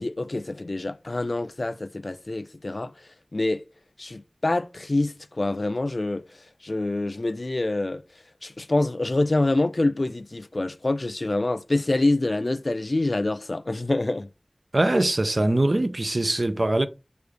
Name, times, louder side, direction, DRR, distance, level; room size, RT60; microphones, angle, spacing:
voice 1, 0.0-2.9 3.3-3.6 4.0-8.0 8.4-14.3, left 2 dB, 65° left, 0.3 m, -26 dB
voice 2, 14.7-16.9, right 1 dB, 55° right, 0.4 m, -22 dB
6.5 x 2.4 x 3.2 m
wide cardioid pair, 40°, 0 cm